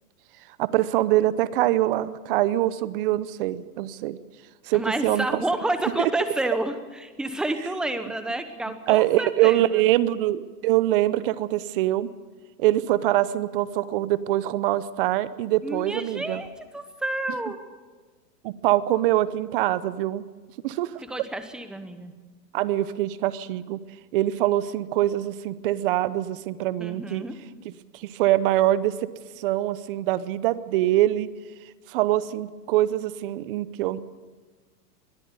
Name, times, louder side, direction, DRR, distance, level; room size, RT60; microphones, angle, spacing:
voice 1, 0.6-4.2 4.7-5.4 6.0-6.1 8.9-12.1 12.6-16.4 18.4-20.2 20.6-21.0 22.5-23.8 24.1-27.2 27.9-28.9 29.4-31.3 31.9-34.0, right 14 dB, 35° right, 17 dB, 0.7 m, -24 dB
voice 2, 4.7-9.8 15.6-17.6 21.0-22.1 26.8-27.4, right 1 dB, ahead, 9 dB, 0.8 m, -30 dB
21.5 x 13.0 x 9.5 m, 1.4 s
hypercardioid pair, 150°, 48 cm